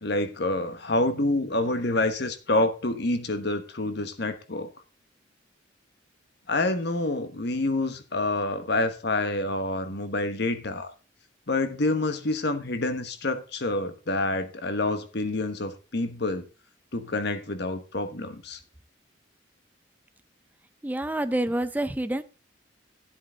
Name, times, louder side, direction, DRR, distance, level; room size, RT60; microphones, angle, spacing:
voice 1, 0.0-4.7 6.5-10.9 11.5-16.4 16.9-18.6, left 2 dB, 60° left, 1.3 m, -27 dB
voice 2, 20.8-22.2, right 1 dB, 10° right, 0.4 m, -27 dB
13.0 x 7.9 x 3.9 m
head